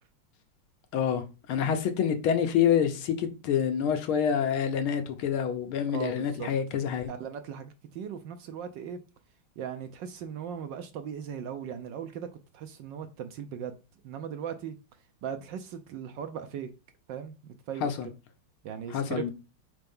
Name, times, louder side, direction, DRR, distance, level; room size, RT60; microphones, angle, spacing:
voice 1, 0.9-1.2 1.5-7.1 17.8-18.1 18.9-19.3, left 8 dB, 75° left, 1.7 m, -27 dB
voice 2, 5.9-6.5 7.1-9.0 9.6-12.3 12.5-13.8 14.0-14.7 15.2-16.7 17.1-17.3 17.7-17.9 18.6-19.3, right 8 dB, 70° right, 1.2 m, -38 dB
4.6 x 4.3 x 5.3 m
omnidirectional pair, 2.3 m